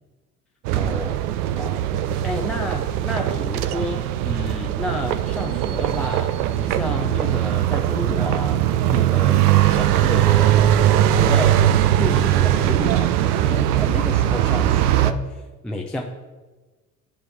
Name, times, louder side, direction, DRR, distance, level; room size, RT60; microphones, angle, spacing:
sound 1, 0.6-15.1, right 12 dB, 65° right, 0.6 m, -20 dB
voice 1, 0.7-1.2 1.6-10.5 11.0-16.0, left 1 dB, ahead, 0 dB, 0.4 m, -31 dB
9.5 x 3.3 x 5.9 m, 1.2 s
figure-of-eight pair, 65°, 50 cm